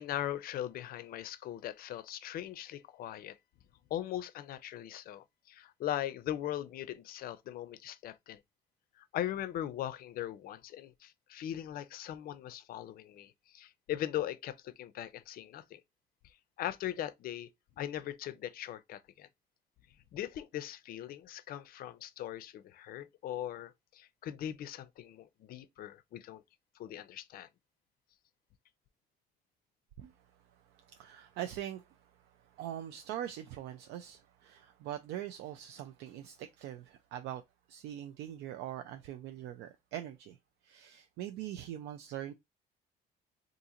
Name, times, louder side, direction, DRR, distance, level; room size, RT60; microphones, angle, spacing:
voice 1, 0.0-3.4 3.9-8.4 9.0-15.8 16.6-17.5 17.8-19.3 20.1-26.4 26.8-27.5, left 12 dB, 60° left, 0.5 m, -40 dB
voice 2, 30.7-31.9 32.5-37.4 37.7-40.4 40.6-42.3, right 11 dB, 85° right, 0.4 m, -42 dB
2.8 x 2.6 x 3.6 m
cardioid pair, 110°, 17 cm